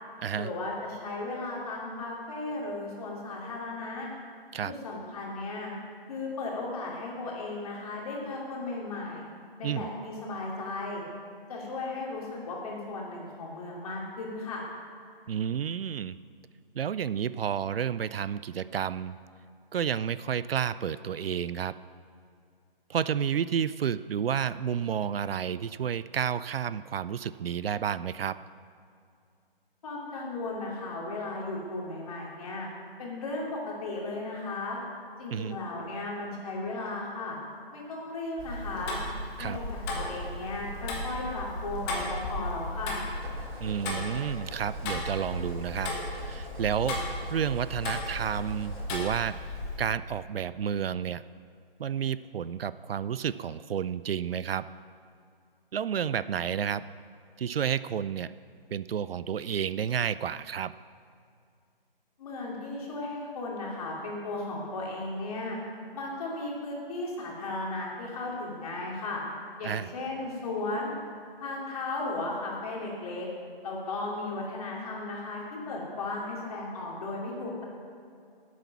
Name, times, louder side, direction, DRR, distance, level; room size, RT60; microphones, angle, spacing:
voice 1, 0.3-4.1 4.7-5.7 6.1-9.3 9.6-11.0 11.5-14.6 29.8-32.7 33.0-34.8 35.2-37.4 37.7-39.0 39.4-43.0 62.2-65.6 65.9-69.2 69.6-70.9 71.4-73.3 73.6-75.4 75.7-77.6, left 2 dB, 40° left, -2 dB, 2.7 m, -35 dB
voice 2, 15.3-16.2 16.7-19.2 19.7-21.8 22.9-28.4 35.3-35.6 39.4-39.6 43.6-47.0 47.3-51.2 51.8-54.7 55.7-56.9 57.4-58.3 58.7-60.8 69.6-69.9, right 8 dB, 75° right, 16 dB, 0.4 m, -31 dB
Tick-tock, 38.4-49.8, left 1 dB, 15° left, 1.3 m, -35 dB
sound 1, 43.1-50.2, right 1 dB, 90° right, 3.4 m, -48 dB
11.5 x 8.4 x 6.0 m, 2.4 s
figure-of-eight pair, 150°, 30 cm